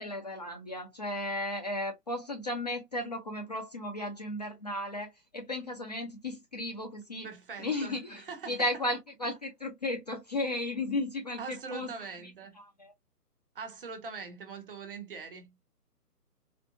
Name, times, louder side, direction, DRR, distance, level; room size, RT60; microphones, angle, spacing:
voice 1, 0.0-7.3 7.6-11.9 12.6-12.9, left 1 dB, 25° left, 0.6 m, -35 dB
voice 2, 7.2-8.6 11.4-12.6 13.5-15.6, right 5 dB, 35° right, 0.9 m, -42 dB
4.4 x 2.0 x 2.7 m
figure-of-eight pair, 140°, 48 cm